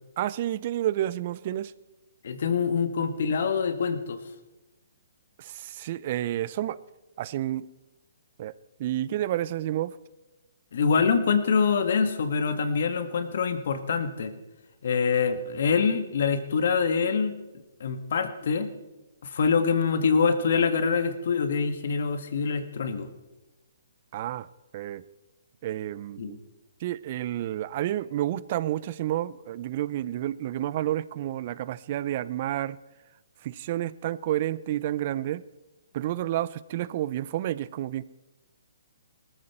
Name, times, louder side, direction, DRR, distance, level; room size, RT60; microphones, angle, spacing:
voice 1, 0.2-1.7 5.4-6.8 7.2-7.7 8.4-8.5 8.8-10.0 24.1-24.5 24.7-25.0 25.6-26.4 26.8-32.8 33.4-35.4 35.9-38.0, right 13 dB, 45° right, 0.6 m, -30 dB
voice 2, 2.2-4.2 10.7-14.3 14.8-17.3 17.8-18.7 19.2-23.1 26.2-26.4, left 5 dB, 60° left, 1.8 m, -25 dB
19.0 x 14.0 x 4.4 m
hypercardioid pair, 140°, 0 cm